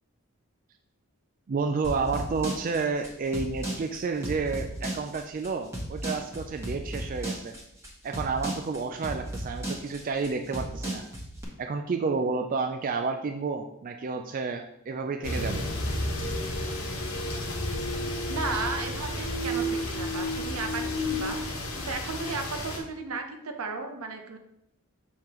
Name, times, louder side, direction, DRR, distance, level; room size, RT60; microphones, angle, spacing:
voice 1, 1.5-7.6 8.0-11.0 11.6-15.7, right 4 dB, 40° right, 5 dB, 0.3 m, -30 dB
sound 1, 1.8-11.4, right 1 dB, 15° right, 1.3 m, -34 dB
sound 2, 15.2-22.8, left 1 dB, 65° left, 1.2 m, -31 dB
voice 2, 18.3-21.4 21.8-24.4, right 4 dB, 80° right, 5 dB, 0.8 m, -34 dB
6.5 x 5.5 x 3.0 m, 0.77 s
head